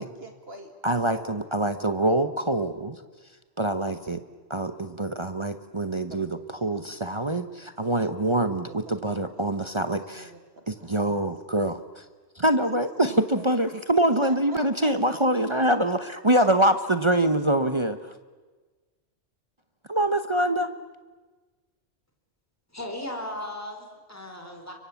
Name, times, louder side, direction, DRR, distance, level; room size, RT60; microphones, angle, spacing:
voice 1, 0.0-0.7 1.1-1.4 6.1-6.2 6.7-7.0 8.7-10.9 13.0-13.5 14.2-15.2, right 2 dB, 50° right, 5 dB, 2.6 m, -45 dB
voice 2, 0.8-3.0 3.6-4.2 4.5-10.3 10.7-12.1 12.3-18.1 19.9-20.7, right 1 dB, 25° right, 9 dB, 0.9 m, -25 dB
voice 3, 22.7-24.7, left 1 dB, 10° left, 3 dB, 3.7 m, -36 dB
30.0 x 23.5 x 7.1 m, 1.3 s
omnidirectional pair, 1.3 m